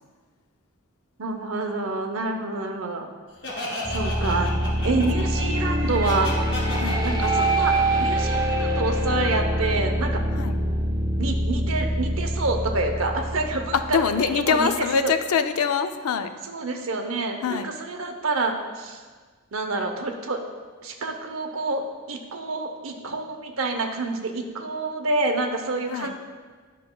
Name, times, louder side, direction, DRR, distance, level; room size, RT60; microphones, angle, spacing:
voice 1, 1.2-3.1 3.9-4.5 4.8-6.3 7.0-7.7 8.0-10.2 11.2-15.1 16.4-19.0 19.5-20.4 20.8-26.2, right 3 dB, 65° right, 4 dB, 0.7 m, -28 dB
Laughter, 3.4-9.1, left 1 dB, 55° left, 1.8 m, -33 dB
sound 1, 3.8-14.8, right 1 dB, 15° right, 0.6 m, -25 dB
voice 2, 13.9-16.3 17.4-17.7 25.9-26.1, left 6 dB, 75° left, 9 dB, 0.4 m, -24 dB
11.0 x 5.7 x 2.2 m, 1.5 s
head